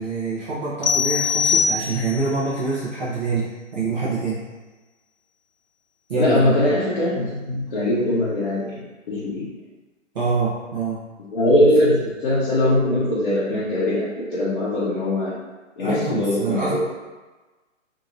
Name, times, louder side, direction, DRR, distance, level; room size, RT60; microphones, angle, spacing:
voice 1, 0.0-4.4 6.1-6.5 10.1-11.0 15.8-16.8, right 3 dB, 35° right, -9 dB, 0.7 m, -25 dB
sound 1, 0.8-2.4, left 6 dB, 65° left, 0.5 m, -22 dB
voice 2, 6.2-8.7 9.1-9.5 11.3-15.3 15.8-16.8, left 1 dB, 40° left, -11 dB, 0.8 m, -21 dB
2.8 x 2.8 x 2.5 m, 1.2 s
figure-of-eight pair, 130°, 38 cm